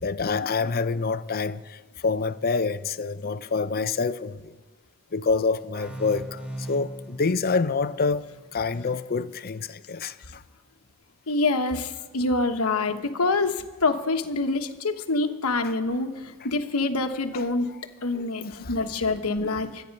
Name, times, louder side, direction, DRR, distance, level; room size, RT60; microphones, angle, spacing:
voice 1, 0.0-1.8 2.0-4.4 5.1-6.4 6.7-8.2 8.5-10.1 18.1-18.2 18.6-18.7 19.4-19.6, left 4 dB, 45° left, 0.6 m, -26 dB
sound 1, 5.7-9.2, right 1 dB, 5° right, 2.8 m, -40 dB
voice 2, 11.3-17.7 18.0-19.8, left 3 dB, 70° left, 1.2 m, -26 dB
24.0 x 9.3 x 5.3 m
head